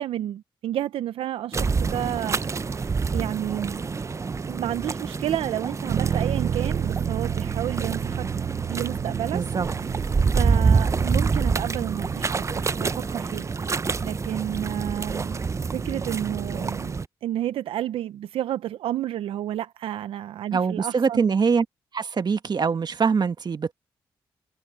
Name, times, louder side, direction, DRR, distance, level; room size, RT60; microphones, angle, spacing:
voice 1, 0.0-3.9 4.5-8.3 8.7-9.4 10.3-13.5 14.0-15.4 15.7-17.0 17.2-21.3, right 12 dB, 85° right, 0.5 m, -31 dB
sound 1, 1.5-17.1, right 5 dB, 35° right, 0.5 m, -27 dB
Bass guitar, 5.9-12.1, right 9 dB, 65° right, 0.9 m, -31 dB
voice 2, 9.3-9.7 20.5-21.6 21.9-23.7, right 5 dB, 50° right, 1.5 m, -23 dB
cardioid pair, 60°, 9 cm